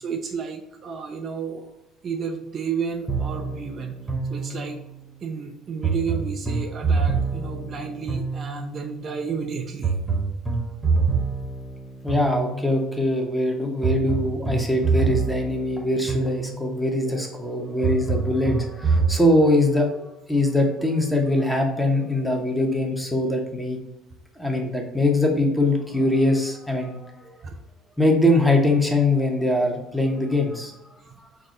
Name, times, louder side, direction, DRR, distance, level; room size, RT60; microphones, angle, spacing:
voice 1, 0.0-1.7 2.0-4.8 5.2-9.9 27.4-27.6 31.1-31.2, right 6 dB, 45° right, 3 dB, 0.4 m, -32 dB
sound 1, 3.1-5.0 5.8-8.9 9.8-12.9 13.8-16.9 17.8-19.2, right 4 dB, 20° right, 1.0 m, -26 dB
voice 2, 12.0-20.0 20.3-23.8 24.4-27.3 28.0-30.7, left 1 dB, 5° left, 2 dB, 0.9 m, -22 dB
4.8 x 2.0 x 3.7 m, 0.90 s
hypercardioid pair, 60°, 0 cm